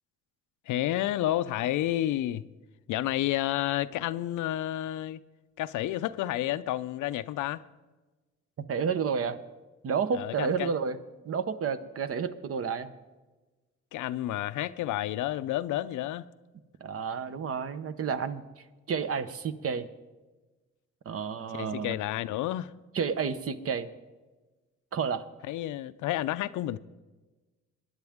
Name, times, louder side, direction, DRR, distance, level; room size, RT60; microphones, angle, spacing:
voice 1, 0.7-2.5 2.9-5.2 5.6-7.6 10.2-10.7 13.9-16.2 21.5-22.7 25.5-26.8, left 14 dB, 80° left, 0.5 m, -30 dB
voice 2, 8.7-9.4 9.8-11.0 11.2-12.9 16.8-19.9 21.0-22.0 22.9-23.9 24.9-25.3, right 6 dB, 50° right, 0.9 m, -31 dB
22.5 x 10.5 x 3.6 m
cardioid pair, 90°, 30 cm